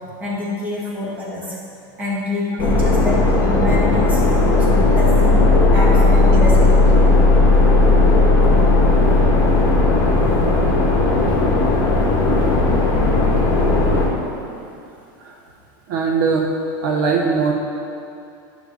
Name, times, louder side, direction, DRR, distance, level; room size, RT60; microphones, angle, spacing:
voice 1, 0.2-1.6 2.0-6.9, left 1 dB, 15° right, -7 dB, 1.8 m, -26 dB
sound 1, 2.6-14.1, left 2 dB, 30° left, 1.5 m, -15 dB
voice 2, 15.9-16.5 16.8-17.5, right 5 dB, 65° right, 0 dB, 0.8 m, -20 dB
10.0 x 3.4 x 6.3 m, 2.5 s
supercardioid pair, 160°, 12 cm